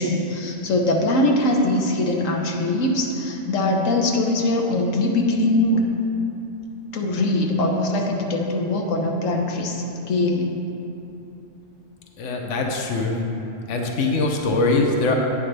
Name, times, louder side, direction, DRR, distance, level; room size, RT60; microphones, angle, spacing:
voice 1, 0.0-5.8 6.9-10.5, left 1 dB, 90° left, 1 dB, 1.3 m, -22 dB
voice 2, 12.2-13.2 13.7-15.2, left 3 dB, 70° left, 1 dB, 1.2 m, -22 dB
11.0 x 8.8 x 3.4 m, 2.9 s
omnidirectional pair, 1.3 m